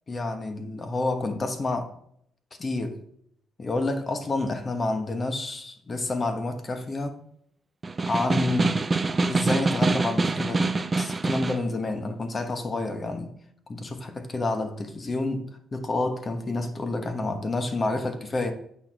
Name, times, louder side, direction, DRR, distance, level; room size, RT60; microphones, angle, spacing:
voice 1, 0.1-1.9 2.6-3.0 3.6-7.2 8.1-8.8 9.3-13.3 13.7-18.5, left 2 dB, 35° left, 1.1 m, -29 dB
Snare drum, 7.8-11.7, right 3 dB, 30° right, 0.5 m, -25 dB
8.5 x 4.6 x 4.1 m
cardioid pair, 90°, 0 cm